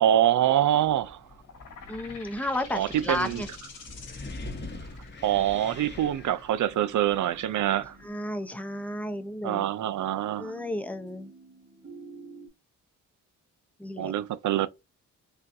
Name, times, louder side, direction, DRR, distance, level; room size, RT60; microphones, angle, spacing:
voice 1, 0.0-1.2 2.7-3.4 5.2-8.0 9.4-10.5 14.0-14.7, right 11 dB, 60° right, 0.5 m, -25 dB
Wind, 0.8-8.1, left 2 dB, 30° left, 1.0 m, -44 dB
sound 1, 1.4-8.8, left 5 dB, 65° left, 1.6 m, -48 dB
voice 2, 1.9-3.5 8.0-9.7 10.4-11.3 13.8-14.1, left 1 dB, 5° left, 0.7 m, -33 dB
sound 2, 6.7-12.5, right 3 dB, 45° right, 1.7 m, -51 dB
4.2 x 2.3 x 2.6 m
cardioid pair, 60°, 34 cm